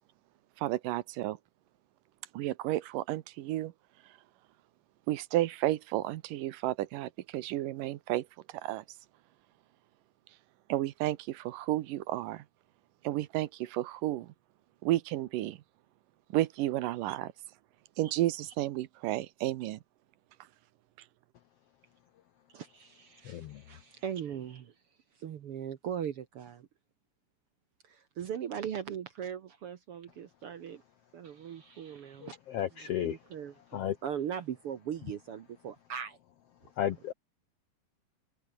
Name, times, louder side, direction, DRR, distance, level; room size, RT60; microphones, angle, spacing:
voice 1, 0.6-1.4 2.3-3.7 5.1-8.3 8.6-8.8 10.7-12.4 13.0-14.3 14.8-15.6 16.3-17.3 18.0-19.8, right 15 dB, 80° right, 2.5 m, -32 dB
voice 2, 22.5-24.7 25.1-26.7 27.8-30.8 31.1-32.3 32.8-36.2, right 8 dB, 60° right, 1.5 m, -39 dB
voice 3, 23.2-23.6 32.2-33.2 33.7-34.0 36.8-37.1, left 11 dB, 75° left, 1.4 m, -33 dB
open air
omnidirectional pair, 3.9 m